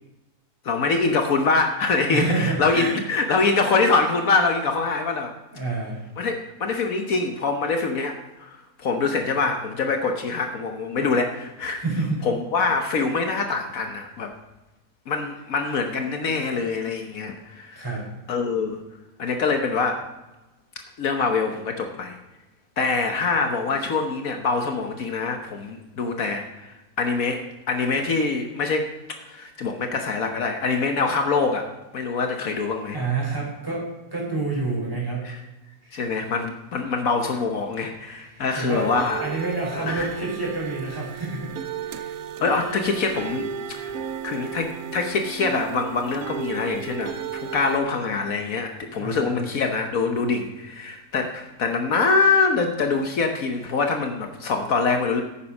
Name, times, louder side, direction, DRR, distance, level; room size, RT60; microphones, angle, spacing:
voice 1, 0.6-5.3 6.2-11.8 12.2-14.3 15.1-17.8 18.3-18.8 19.2-20.1 21.0-22.2 22.8-28.9 29.2-31.7 31.9-33.0 35.2-35.4 35.9-39.2 39.7-40.1 42.4-44.0 44.2-55.2, left 4 dB, 65° left, 4 dB, 1.4 m, -24 dB
voice 2, 2.1-3.0 5.5-6.1 11.8-12.2 17.7-18.1 32.9-35.3 35.8-36.0 38.3-41.5 41.9-42.2 48.8-49.4, right 3 dB, 15° right, -4 dB, 4.7 m, -28 dB
sound 1, 38.7-47.8, right 8 dB, 75° right, 1.2 m, -34 dB
11.0 x 8.7 x 5.3 m, 1.0 s
omnidirectional pair, 1.6 m